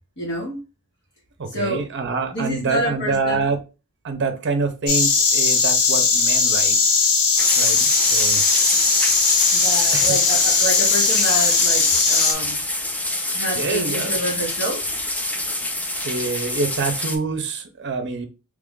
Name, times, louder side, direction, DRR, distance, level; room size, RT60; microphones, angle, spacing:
voice 1, 0.2-0.6 1.5-1.9 2.3-3.4 9.5-12.6 13.3-14.8, right 1 dB, 50° left, 1.3 m, -27 dB
voice 2, 1.4-3.6 4.0-6.8 7.5-8.4 8.9-9.3 9.9-10.2 13.5-14.1 16.0-18.3, right 4 dB, 55° right, 0.6 m, -26 dB
Insect, 4.9-12.3, left 4 dB, 70° left, 0.9 m, -18 dB
sound 1, 7.4-17.2, left 1 dB, 5° left, 0.4 m, -26 dB
3.0 x 2.5 x 3.6 m
head